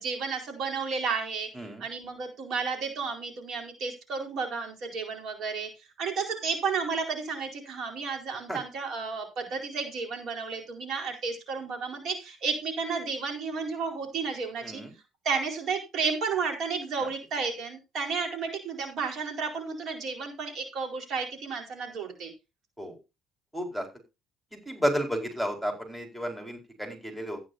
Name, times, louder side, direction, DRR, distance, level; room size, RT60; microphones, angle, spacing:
voice 1, 0.0-1.5 1.8-5.7 6.0-14.8 15.2-22.3, right 5 dB, 60° right, 3 dB, 4.3 m, -32 dB
voice 2, 23.5-23.8 24.5-27.4, equal, 5° right, 3 dB, 4.6 m, -32 dB
15.0 x 10.0 x 2.7 m, 0.26 s
cardioid pair, 100°, 0 cm